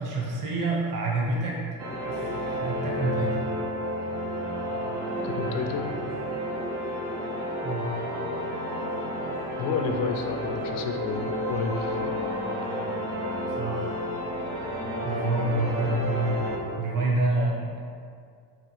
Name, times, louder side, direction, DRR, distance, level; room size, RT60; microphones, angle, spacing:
voice 1, 0.0-1.6 2.1-3.4 7.6-7.9 13.6-14.0 15.0-17.9, right 2 dB, 45° right, -3 dB, 1.2 m, -28 dB
sound 1, 1.8-16.6, equal, 85° right, 1.0 m, -31 dB
voice 2, 5.2-5.9 9.6-12.1, left 5 dB, 75° left, 5 dB, 0.6 m, -31 dB
5.9 x 2.4 x 3.3 m, 2.2 s
hypercardioid pair, 70°, 45 cm